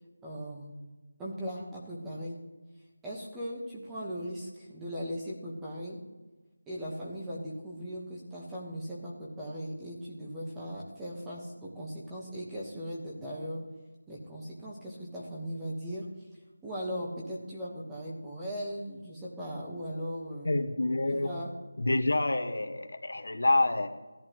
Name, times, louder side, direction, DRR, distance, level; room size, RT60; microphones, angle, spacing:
voice 1, 0.2-0.7 1.2-2.4 3.0-6.0 6.7-13.6 14.1-16.0 16.6-20.5 21.1-21.5, equal, 5° right, -6 dB, 1.3 m, -38 dB
voice 2, 20.4-21.3 21.8-23.9, left 2 dB, 75° left, 5 dB, 1.4 m, -27 dB
15.5 x 10.5 x 3.1 m, 1.2 s
figure-of-eight pair, 170°, 0 cm